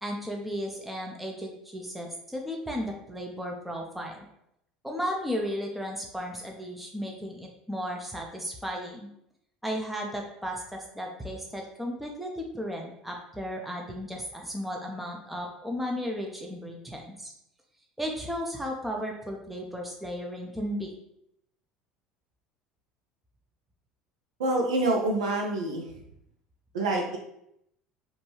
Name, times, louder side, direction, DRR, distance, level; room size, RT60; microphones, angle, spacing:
voice 1, 0.0-4.3 4.8-9.1 9.6-17.3 18.0-20.9, equal, 5° right, 0 dB, 0.5 m, -35 dB
voice 2, 24.4-25.9 26.7-27.2, right 2 dB, 80° right, 0 dB, 0.5 m, -26 dB
2.6 x 2.2 x 3.0 m, 0.77 s
hypercardioid pair, 75°, 3 cm